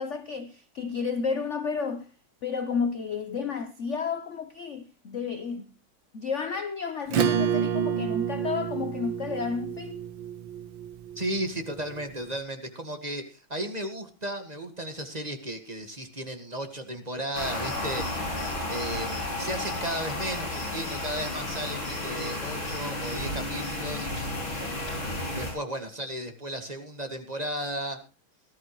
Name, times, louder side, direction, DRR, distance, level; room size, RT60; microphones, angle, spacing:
voice 1, 0.0-2.1 2.4-5.7 6.1-10.0, left 5 dB, 55° left, 0.9 m, -31 dB
Acoustic guitar / Strum, 7.1-12.0, right 8 dB, 70° right, 1.9 m, -29 dB
voice 2, 11.1-18.4 18.7-24.1 25.4-28.0, right 1 dB, 20° right, 1.7 m, -34 dB
sound 1, 17.3-25.5, left 2 dB, 70° left, 7.3 m, -32 dB
19.0 x 12.5 x 3.1 m
omnidirectional pair, 2.2 m